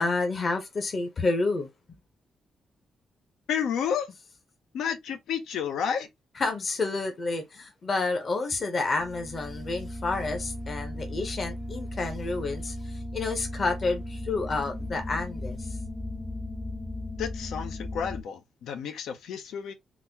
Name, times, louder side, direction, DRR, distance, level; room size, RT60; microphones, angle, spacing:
voice 1, 0.0-1.7 6.4-15.7, left 3 dB, 30° left, 0.7 m, -29 dB
voice 2, 3.5-4.1 4.7-6.1 17.2-19.7, left 8 dB, 90° left, 0.6 m, -31 dB
sound 1, 9.0-18.2, left 1 dB, 10° right, 0.5 m, -36 dB
3.9 x 2.1 x 2.7 m
wide cardioid pair, 175°, 0 cm